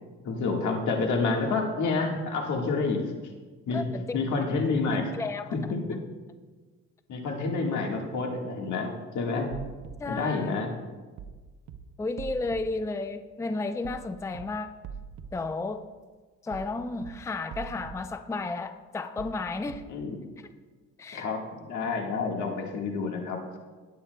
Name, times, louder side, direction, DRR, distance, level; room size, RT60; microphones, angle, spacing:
voice 1, 0.2-3.0 3.7-3.8 4.1-5.1 5.5-6.0 7.1-9.5 10.1-10.7 19.9-20.2 21.1-23.4, left 4 dB, 75° left, 1 dB, 1.7 m, -28 dB
voice 2, 3.7-4.2 5.1-5.5 10.0-10.5 12.0-14.8 15.3-15.8 16.4-19.8 21.0-21.2, left 3 dB, 10° left, 9 dB, 0.4 m, -33 dB
sound 1, 9.5-9.9 11.2-11.4 11.7-11.8 12.2-12.6 13.8-14.0 14.3-14.4 14.8-15.3 16.5-16.7 17.0-17.1 17.5-17.9 19.2-19.4 19.7-19.8, right 7 dB, 75° right, 0.8 m, -41 dB
18.0 x 8.5 x 2.2 m, 1.4 s
cardioid pair, 90°, 30 cm